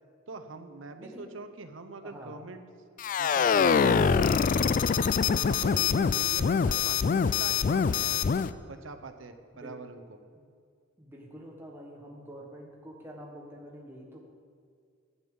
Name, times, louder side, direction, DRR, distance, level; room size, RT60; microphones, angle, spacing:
voice 1, 0.3-2.7 3.2-4.9 5.3-8.2 8.7-10.0, right 3 dB, 80° right, 8 dB, 0.8 m, -43 dB
voice 2, 1.0-1.3 2.0-2.4 9.5-9.8 10.3-10.5 11.0-14.2, equal, 10° right, -2 dB, 1.3 m, -46 dB
sound 1, 3.0-8.5, left 6 dB, 45° left, 0.3 m, -24 dB
11.0 x 5.5 x 7.7 m, 2.2 s
head